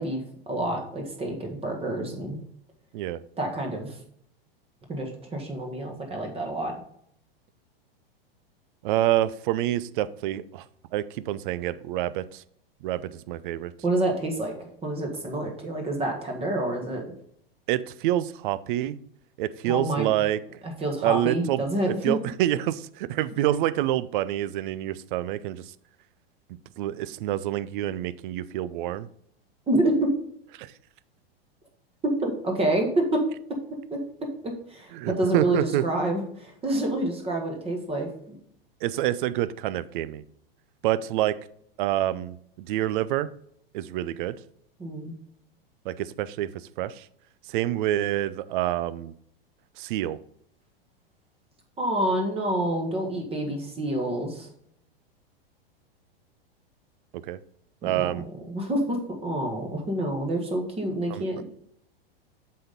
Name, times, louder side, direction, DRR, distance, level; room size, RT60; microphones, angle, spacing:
voice 1, 0.0-2.4 3.4-4.0 4.9-6.7 13.8-17.0 19.6-20.1 20.6-22.1 29.7-30.1 32.2-33.0 33.9-34.0 34.4-38.1 44.8-45.1 51.8-54.5 57.8-61.5, right 1 dB, 20° right, 2 dB, 1.6 m, -28 dB
voice 2, 8.8-10.6 10.9-12.4 12.8-13.7 17.7-19.0 19.4-20.4 21.0-25.6 26.8-29.1 30.6-30.7 34.9-35.8 38.8-40.2 40.8-41.4 41.8-43.3 43.7-44.3 45.9-46.5 46.8-47.1 47.5-49.1 49.8-50.2 57.3-57.4 57.8-58.2 61.1-61.3, right 13 dB, 55° right, 16 dB, 0.5 m, -27 dB
7.6 x 4.3 x 5.3 m, 0.67 s
hypercardioid pair, 120°, 30 cm